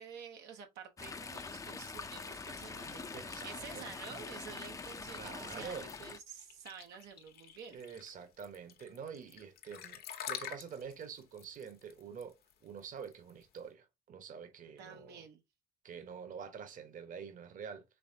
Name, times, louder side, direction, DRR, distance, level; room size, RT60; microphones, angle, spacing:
voice 1, 0.0-7.8 14.8-15.4, right 7 dB, 85° right, 1.0 m, -50 dB
Chatter / Stream, 1.0-6.2, left 4 dB, 20° left, 0.5 m, -44 dB
voice 2, 3.1-3.9 5.1-5.9 7.7-12.3 12.6-15.2 15.8-17.8, right 7 dB, 50° right, 1.1 m, -47 dB
sound 1, 5.9-13.6, left 9 dB, 65° left, 1.0 m, -47 dB
5.6 x 3.4 x 2.7 m
cardioid pair, 110°, 17 cm